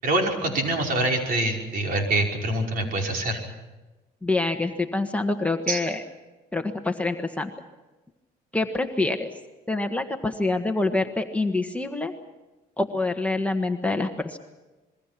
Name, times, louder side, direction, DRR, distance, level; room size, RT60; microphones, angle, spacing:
voice 1, 0.0-3.4 5.7-5.8, right 2 dB, 60° right, 1 dB, 5.5 m, -25 dB
voice 2, 4.2-6.0 6.5-7.5 8.5-9.3 9.7-12.1 12.8-14.4, left 2 dB, 10° left, 4 dB, 1.5 m, -26 dB
27.0 x 22.0 x 6.0 m, 1.1 s
cardioid pair, 110°, 17 cm